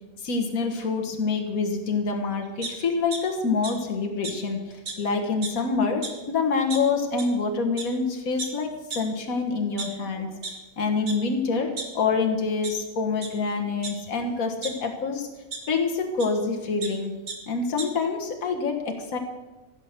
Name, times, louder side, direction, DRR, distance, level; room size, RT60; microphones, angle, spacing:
voice 1, 0.2-10.3 10.8-15.3 15.7-17.2 17.5-19.2, left 4 dB, 75° left, 4 dB, 1.9 m, -26 dB
sound 1, 2.6-3.2 3.6-3.7 4.2-4.3 4.9-5.0 5.3-5.6 6.0-6.1 6.7-6.8 7.2-7.3 7.8-7.9 8.4-8.5 8.9-9.0 9.6-10.5 11.1-11.2 11.5-12.2 12.6-12.7 13.2-13.3 13.8-14.7 15.5-15.6 16.2-16.3 16.6-16.9 17.3-17.4 17.6-17.9, right 4 dB, 75° right, 2.1 m, -34 dB
15.5 x 8.5 x 6.6 m, 1.1 s
omnidirectional pair, 1.5 m